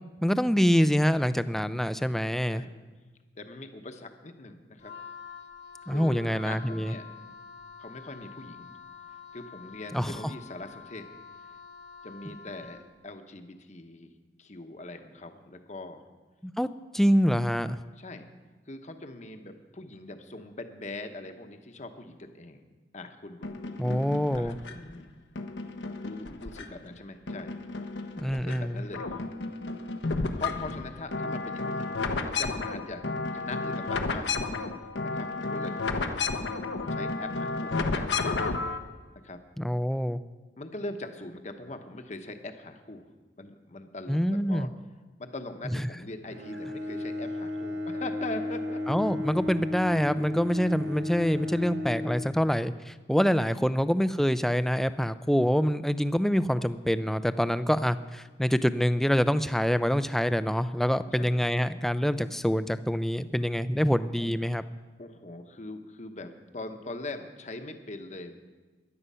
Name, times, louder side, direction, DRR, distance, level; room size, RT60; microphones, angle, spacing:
voice 1, 0.2-2.6 5.9-6.9 9.9-10.2 16.4-16.7 16.9-17.8 23.8-24.6 28.2-28.8 39.6-40.2 44.1-44.7 45.7-45.9 48.9-64.6, equal, ahead, 13 dB, 0.4 m, -26 dB
voice 2, 3.4-4.9 5.9-7.0 7.8-8.7 9.3-11.1 12.0-14.1 14.4-16.1 18.0-18.3 18.7-22.6 22.9-24.0 24.3-25.1 26.0-27.5 28.2-29.2 30.4-33.0 33.3-34.4 35.0-35.9 36.9-38.1 39.2-39.4 40.6-43.1 43.4-44.7 45.2-48.8 61.1-61.5 64.2-64.3 65.0-68.4, left 2 dB, 40° left, 7 dB, 1.0 m, -41 dB
Wind instrument woodwind instrument, 4.8-13.0, left 6 dB, 65° left, 1.1 m, -47 dB
sound 1, 23.4-24.9 25.4-26.9 27.3-28.6 28.8-38.8, left 3 dB, 90° left, 1.0 m, -32 dB
Bowed string instrument, 46.2-52.9, left 2 dB, 80° right, 2.0 m, -34 dB
15.5 x 11.0 x 5.6 m, 1.3 s
head